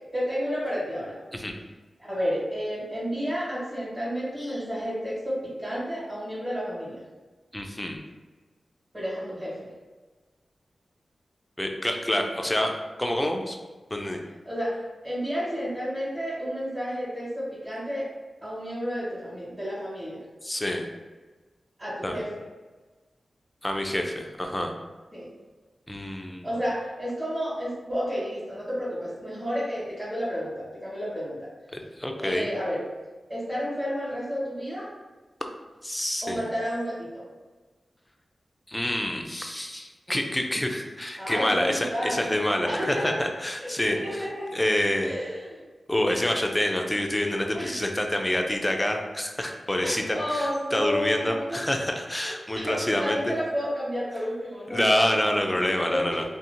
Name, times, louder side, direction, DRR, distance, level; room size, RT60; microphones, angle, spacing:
voice 1, 0.1-1.2 2.0-7.0 8.9-9.6 14.4-14.8 15.0-18.1 18.4-20.2 21.8-22.3 25.1-25.3 26.4-31.3 32.2-32.8 33.3-34.9 36.2-37.2 41.2-42.3 42.6-43.2 43.6-44.5 45.0-45.6 47.5-47.8 49.8-51.4 52.2-55.2 55.5-55.6 55.8-56.2, equal, 25° right, -10 dB, 1.4 m, -31 dB
voice 2, 7.5-8.0 11.6-12.7 13.0-13.6 13.9-14.2 20.4-20.9 22.0-22.2 23.6-24.8 25.9-26.5 31.7-32.5 35.8-36.4 38.7-44.3 44.5-45.1 45.9-50.0 50.3-53.2 54.7-56.2, left 1 dB, 15° left, 3 dB, 0.3 m, -27 dB
2.7 x 2.0 x 2.5 m, 1.3 s
wide cardioid pair, 70°, 0 cm